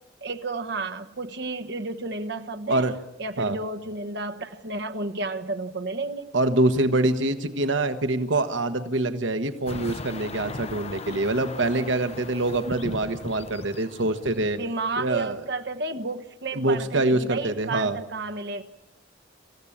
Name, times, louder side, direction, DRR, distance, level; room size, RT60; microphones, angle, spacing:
voice 1, 0.2-2.9 3.2-6.3 14.6-18.6, right 3 dB, 65° right, 7 dB, 1.4 m, -32 dB
voice 2, 2.7-3.0 3.4-3.6 6.3-14.6 15.0-15.4 16.5-18.0, right 2 dB, 80° right, 8 dB, 1.2 m, -25 dB
sound 1, 9.7-14.7, left 3 dB, 35° left, 0.8 m, -38 dB
26.5 x 15.0 x 8.6 m, 1.1 s
head